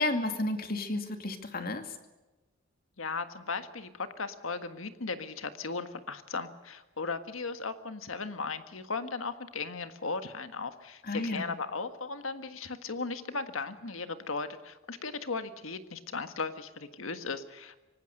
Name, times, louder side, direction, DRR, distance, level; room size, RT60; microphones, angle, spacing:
voice 1, 0.0-1.9 11.0-11.5, left 2 dB, 50° left, 7 dB, 2.4 m, -32 dB
voice 2, 3.0-17.8, left 4 dB, 85° left, 9 dB, 1.6 m, -37 dB
25.0 x 18.5 x 6.7 m, 1.1 s
head